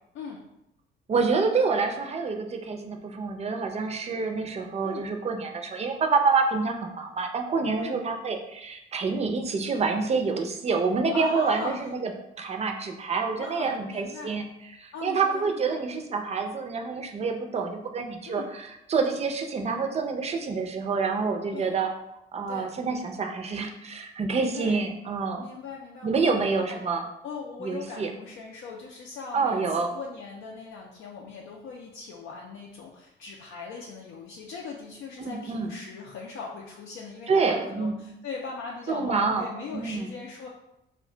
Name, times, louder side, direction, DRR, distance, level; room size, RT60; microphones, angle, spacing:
voice 1, 1.1-12.1 12.4-14.4 14.7-18.6 18.9-21.9 22.3-25.4 26.0-27.0 27.6-28.1 29.3-29.9 35.2-35.7 37.3-38.0 38.9-40.1, right 4 dB, 35° right, 4 dB, 0.5 m, -27 dB
voice 2, 11.1-11.9 13.4-14.4 14.9-15.8 18.3-18.5 21.5-21.7 22.5-22.7 24.5-24.8 25.4-26.9 27.2-40.5, left 5 dB, 80° left, -2 dB, 0.4 m, -39 dB
2.3 x 2.2 x 3.7 m, 0.85 s
cardioid pair, 90°, 20 cm